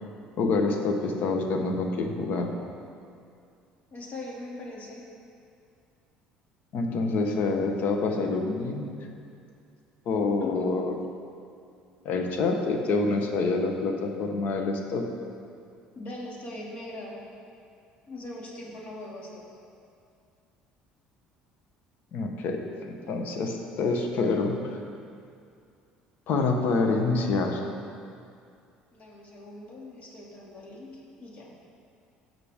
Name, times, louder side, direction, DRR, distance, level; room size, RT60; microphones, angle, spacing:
voice 1, 0.4-2.5 6.7-8.9 10.1-10.9 12.0-15.1 22.1-24.8 26.3-27.7, left 3 dB, 65° left, 3 dB, 1.2 m, -27 dB
voice 2, 3.9-5.0 10.4-10.7 15.9-17.2 18.1-19.4 28.9-31.5, left 2 dB, 45° left, -3 dB, 2.5 m, -41 dB
16.5 x 5.8 x 3.7 m, 2.4 s
supercardioid pair, 80°, 3 cm